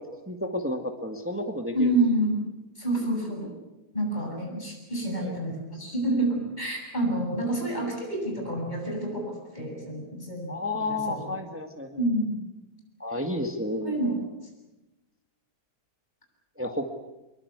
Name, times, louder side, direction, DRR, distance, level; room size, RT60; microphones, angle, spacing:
voice 1, 0.3-2.0 5.2-5.4 10.5-12.0 13.0-13.9 16.6-16.9, left 1 dB, 10° right, 5 dB, 1.7 m, -31 dB
voice 2, 1.7-2.4 2.8-3.5 3.9-10.5 10.9-11.4 12.0-12.4 13.8-14.2, right 1 dB, 25° left, 1 dB, 7.7 m, -28 dB
25.0 x 22.5 x 8.2 m, 1.0 s
omnidirectional pair, 1.7 m